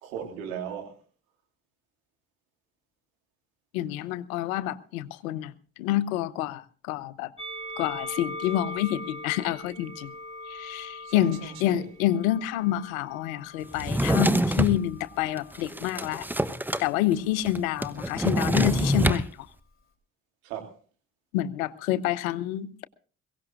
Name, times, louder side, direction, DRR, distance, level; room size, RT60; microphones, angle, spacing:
voice 1, 0.0-1.0 11.0-11.9 20.4-20.7, right 8 dB, 80° right, 2 dB, 2.8 m, -37 dB
voice 2, 3.7-5.5 5.8-7.3 7.8-10.1 10.5-16.3 16.8-19.5 21.3-22.9, left 13 dB, 75° left, 17 dB, 0.8 m, -28 dB
Musical instrument, 7.4-13.8 14.6-15.6, left 1 dB, 30° left, 3.3 m, -41 dB
Drawer open or close, 13.7-14.8 15.4-16.9 17.1-17.2 17.4-19.2, right 1 dB, 5° right, 1.0 m, -25 dB
22.0 x 17.0 x 2.5 m, 0.39 s
figure-of-eight pair, 45°, 42 cm